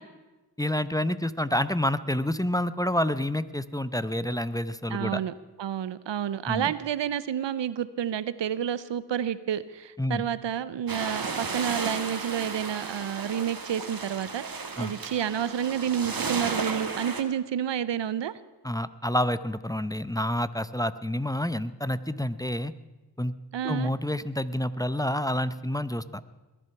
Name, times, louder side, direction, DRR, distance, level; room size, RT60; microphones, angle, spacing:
voice 1, 0.6-5.2 6.5-6.7 10.0-10.2 14.8-14.9 18.6-22.7 23.2-23.3 23.6-26.2, left 1 dB, 10° left, 14 dB, 0.7 m, -28 dB
voice 2, 4.9-5.3 5.6-18.4 23.5-23.9, right 9 dB, 80° right, 16 dB, 0.7 m, -30 dB
sound 1, 10.9-17.2, right 4 dB, 55° right, 1.8 m, -34 dB
21.5 x 9.9 x 5.8 m, 1.2 s
cardioid pair, 45°, 43 cm